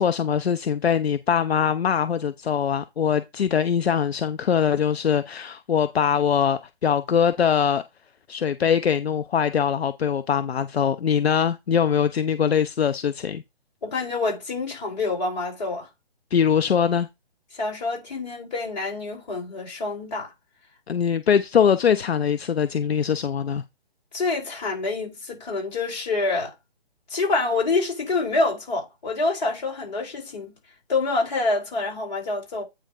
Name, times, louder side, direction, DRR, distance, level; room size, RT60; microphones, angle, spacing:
voice 1, 0.0-7.8 8.3-13.4 16.3-17.1 20.9-23.6, left 7 dB, 75° left, 0.7 m, -22 dB
voice 2, 13.8-15.9 17.5-20.3 24.1-26.5 27.1-30.5 30.9-32.6, left 3 dB, 45° left, 5.1 m, -26 dB
8.9 x 3.3 x 5.2 m
hypercardioid pair, 165°, 31 cm